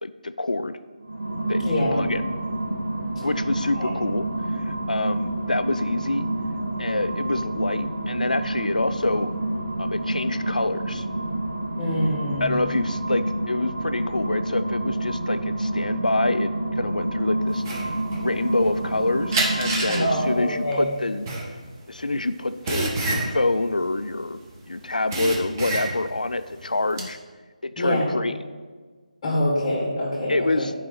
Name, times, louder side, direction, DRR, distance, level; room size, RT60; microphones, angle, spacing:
voice 1, 0.0-0.8 1.5-2.2 3.2-4.3 4.6-6.3 6.8-9.3 9.8-11.0 12.4-17.6 18.2-21.3 21.9-24.4 24.7-27.2 27.6-28.4 30.3-30.7, left 2 dB, 85° left, 12 dB, 0.5 m, -26 dB
sound 1, 1.0-20.7, right 1 dB, 70° right, 1.6 m, -28 dB
voice 2, 1.6-2.1 3.8-3.9 11.8-12.6 19.9-20.9 27.8-28.1 29.2-30.7, equal, 25° left, -6 dB, 2.0 m, -25 dB
sound 2, 17.6-18.9 19.3-24.6 24.9-26.2 26.6-27.1, right 2 dB, 25° right, 1.1 m, -28 dB
11.0 x 5.0 x 3.9 m, 1.5 s
figure-of-eight pair, 155°, 4 cm